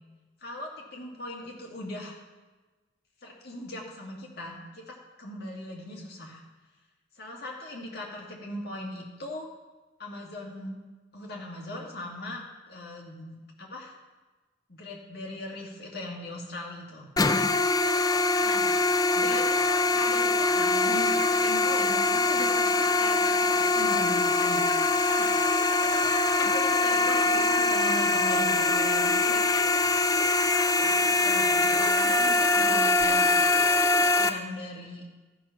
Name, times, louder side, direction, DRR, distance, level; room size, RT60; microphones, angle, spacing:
voice 1, 0.4-2.2 3.2-6.4 7.2-9.5 10.0-10.8 11.1-13.9 14.7-17.1 18.4-18.7 19.1-24.6 25.0-25.3 25.8-29.4 30.8-33.4 33.9-35.0, left 1 dB, 55° left, -2 dB, 2.1 m, -39 dB
sound 1, 17.2-34.3, left 3 dB, 20° left, 0.4 m, -23 dB
13.0 x 5.8 x 5.8 m, 1.2 s
head